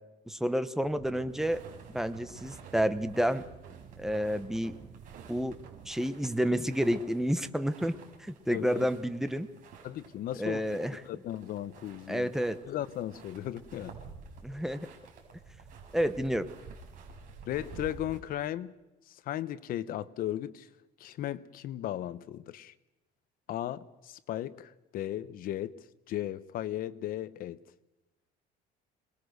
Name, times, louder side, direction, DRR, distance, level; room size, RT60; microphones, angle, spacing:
voice 1, 0.3-1.6 1.9-3.4 4.0-4.7 5.3-5.6 5.9-7.9 8.2-9.5 10.4-11.0 12.1-12.6 14.4-14.9 15.9-16.5, equal, ahead, 11 dB, 1.0 m, -30 dB
sound 1, 0.8-5.9, right 8 dB, 70° right, 3.9 m, -50 dB
sound 2, 1.3-18.2, right 5 dB, 50° right, 6.0 m, -51 dB
voice 2, 8.5-8.9 9.8-10.8 11.0-12.3 12.7-13.9 17.5-18.8 19.1-20.7 21.0-22.7 23.5-25.8 26.1-27.6, left 12 dB, 55° left, 15 dB, 1.0 m, -36 dB
26.5 x 21.0 x 6.7 m, 1.0 s
cardioid pair, 150°, 17 cm